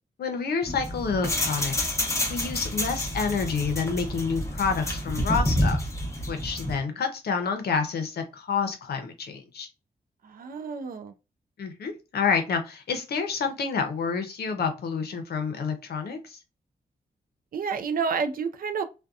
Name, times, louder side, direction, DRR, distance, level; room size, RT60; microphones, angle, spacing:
voice 1, 0.2-2.0 2.3-5.9 6.3-9.7 11.6-16.4, left 5 dB, 85° left, 0.6 m, -28 dB
sound 1, 0.6-6.8, left 1 dB, 20° left, 0.7 m, -28 dB
voice 2, 10.2-11.1 17.5-18.8, right 5 dB, 65° right, 0.4 m, -29 dB
2.6 x 2.1 x 2.3 m
wide cardioid pair, 115°, 16 cm